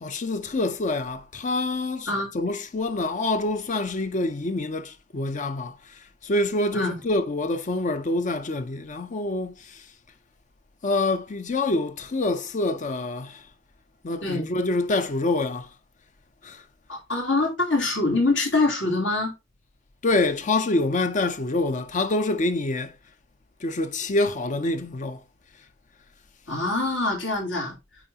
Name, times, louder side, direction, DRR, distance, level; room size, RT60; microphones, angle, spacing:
voice 1, 0.0-2.1 2.3-5.7 6.2-9.5 10.8-13.4 14.0-15.7 16.4-16.6 20.0-22.9 23.6-25.2, left 2 dB, 40° left, 0.6 m, -26 dB
voice 2, 14.2-14.5 16.9-19.3 26.5-27.7, left 2 dB, 80° left, 3.1 m, -24 dB
8.9 x 4.0 x 2.8 m
head